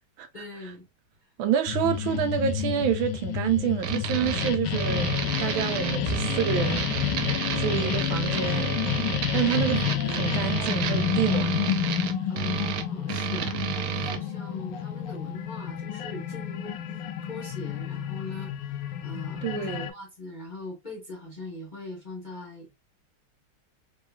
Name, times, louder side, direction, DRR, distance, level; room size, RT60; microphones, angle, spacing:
voice 1, 0.3-0.8 12.3-16.7 17.3-22.8, left 2 dB, 35° left, 0.8 m, -41 dB
voice 2, 1.4-5.1 5.4-6.8 7.5-8.7 9.3-11.8 19.4-19.9, right 9 dB, 90° right, 1.5 m, -28 dB
sound 1, 1.7-19.9, left 9 dB, 75° left, 1.2 m, -30 dB
sound 2, 3.8-14.2, right 10 dB, 70° right, 0.9 m, -31 dB
3.7 x 3.2 x 2.2 m
omnidirectional pair, 2.2 m